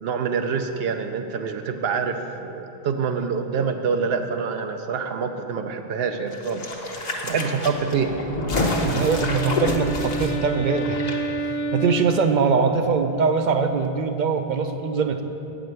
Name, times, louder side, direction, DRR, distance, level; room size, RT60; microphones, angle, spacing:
voice 1, 0.0-6.6 7.2-8.2, right 5 dB, 80° right, 6 dB, 0.8 m, -26 dB
sound 1, 6.3-11.1 11.4-11.5, left 2 dB, 45° left, 0.9 m, -28 dB
Wind instrument woodwind instrument, 8.4-13.0, right 1 dB, 90° left, 0.8 m, -30 dB
voice 2, 8.8-11.1 11.4-15.2, right 5 dB, 55° right, 7 dB, 0.6 m, -22 dB
8.3 x 5.0 x 7.6 m, 3.0 s
omnidirectional pair, 1.0 m